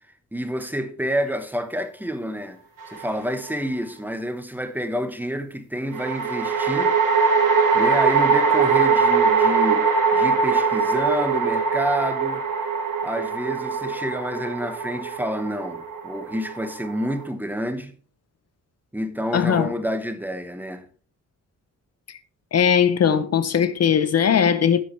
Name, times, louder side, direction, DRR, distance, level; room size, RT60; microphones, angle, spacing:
voice 1, 0.3-2.6 2.9-7.0 7.7-12.5 13.0-17.9 18.9-20.9, equal, 5° right, 1.0 m, -28 dB
sound 1, 2.8-3.5 5.9-17.3, right 5 dB, 80° right, 1.8 m, -22 dB
voice 2, 19.3-19.7 22.5-24.9, left 8 dB, 55° left, 0.7 m, -19 dB
12.0 x 7.8 x 3.2 m
wide cardioid pair, 120°, 31 cm